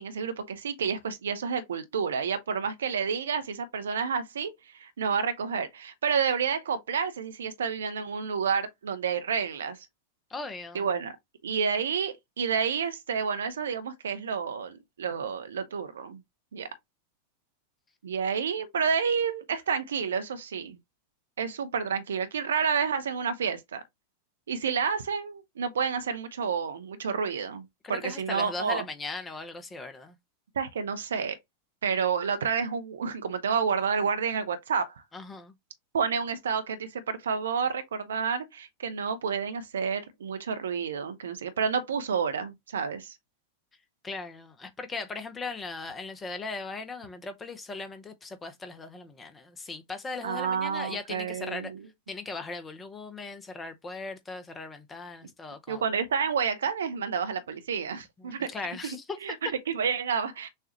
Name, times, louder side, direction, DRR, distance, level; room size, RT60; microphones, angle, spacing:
voice 1, 0.0-9.8 10.7-11.1 11.4-16.2 16.5-16.7 18.0-20.8 21.4-23.8 24.5-28.8 30.6-31.4 31.8-34.9 35.9-43.2 50.2-51.9 55.7-58.5 58.8-60.5, right 6 dB, 65° right, 0.8 m, -30 dB
voice 2, 10.3-10.9 27.8-30.1 35.1-35.5 44.0-51.7 52.1-55.8 58.2-59.2, left 3 dB, 15° left, 0.8 m, -38 dB
6.5 x 2.4 x 2.9 m
figure-of-eight pair, 90°, 0 cm